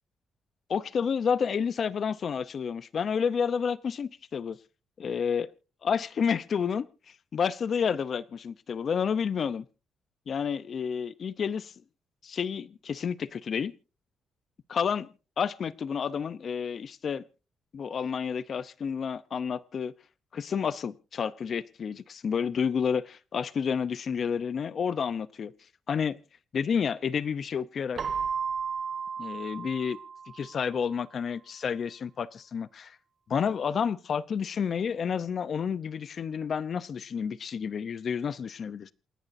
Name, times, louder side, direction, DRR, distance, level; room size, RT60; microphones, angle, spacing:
voice 1, 0.7-4.5 5.0-5.5 5.8-6.9 7.3-9.6 10.3-11.7 12.2-13.7 14.7-15.1 15.4-17.2 17.7-19.9 20.3-25.5 25.9-26.2 26.5-28.0 29.2-30.0 30.3-33.0 33.3-38.9, left 6 dB, 40° left, 0.7 m, -30 dB
Keyboard (musical), 28.0-30.7, right 6 dB, 40° right, 1.1 m, -34 dB
28.5 x 10.5 x 2.7 m
wide cardioid pair, 175°, 0 cm